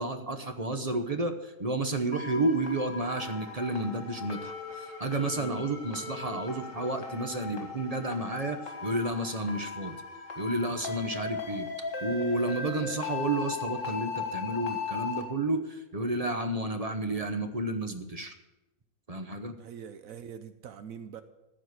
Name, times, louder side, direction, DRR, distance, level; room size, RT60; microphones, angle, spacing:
voice 1, 0.0-10.0 10.4-11.7 12.0-18.3 19.1-19.6, right 2 dB, 30° right, 7 dB, 0.8 m, -31 dB
sound 1, 2.1-15.2, left 5 dB, 60° left, 2.5 m, -38 dB
voice 2, 5.3-5.6 19.6-21.2, right 7 dB, 70° right, 11 dB, 1.1 m, -44 dB
14.5 x 5.0 x 9.3 m, 0.99 s
omnidirectional pair, 1.5 m